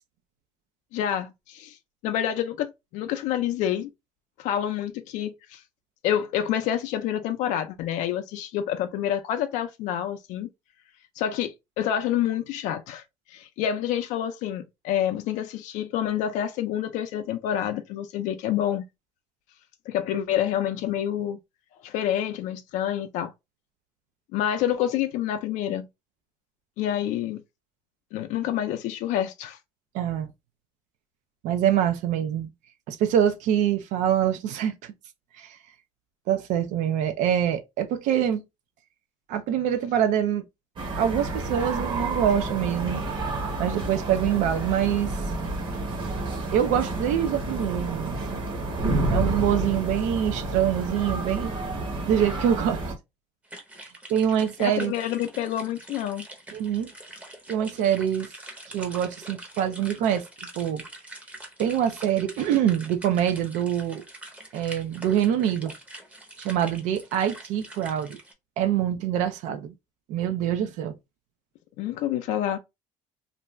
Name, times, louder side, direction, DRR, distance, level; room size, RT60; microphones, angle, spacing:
voice 1, 0.9-1.8 2.0-3.9 4.4-5.6 6.0-10.5 11.2-13.0 13.3-18.8 19.9-21.4 21.8-23.3 24.3-25.9 26.8-27.4 28.1-29.6 54.6-56.3 71.8-72.6, left 10 dB, 75° left, 0.4 m, -28 dB
voice 2, 29.9-30.3 31.4-32.5 32.9-34.9 35.4-35.6 36.3-38.4 39.3-40.4 41.0-43.0 43.6-45.1 46.5-48.4 49.1-51.5 52.1-52.8 54.1-54.9 56.5-56.9 57.5-58.3 58.7-60.2 60.6-60.8 61.6-64.0 64.5-65.7 66.4-68.2 68.6-69.7 70.1-70.9, right 10 dB, 75° right, 0.4 m, -25 dB
sound 1, 40.8-52.9, right 2 dB, 40° right, 1.0 m, -30 dB
sound 2, 53.4-68.3, right 1 dB, 10° right, 0.7 m, -44 dB
2.5 x 2.3 x 3.0 m
cardioid pair, 135°, 13 cm